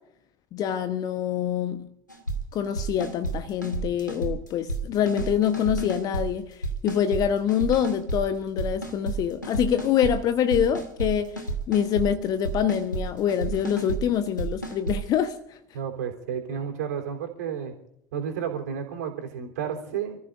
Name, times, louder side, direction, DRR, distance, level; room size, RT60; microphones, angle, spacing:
voice 1, 0.5-1.9 2.5-15.6, left 9 dB, 40° left, 1.1 m, -25 dB
sound 1, 2.1-2.4 2.8-3.3 3.6-4.8 5.1-6.2 6.6-7.2 7.5-8.2 8.6-9.2 9.4-10.1 10.5-11.1 11.4-12.1 12.4-13.0 13.3-14.0 14.4-15.0, right 2 dB, 90° left, 2.2 m, -31 dB
voice 2, 15.7-17.7 18.1-20.2, right 8 dB, 65° right, 3.5 m, -31 dB
29.5 x 14.5 x 2.6 m
figure-of-eight pair, 70°, 10 cm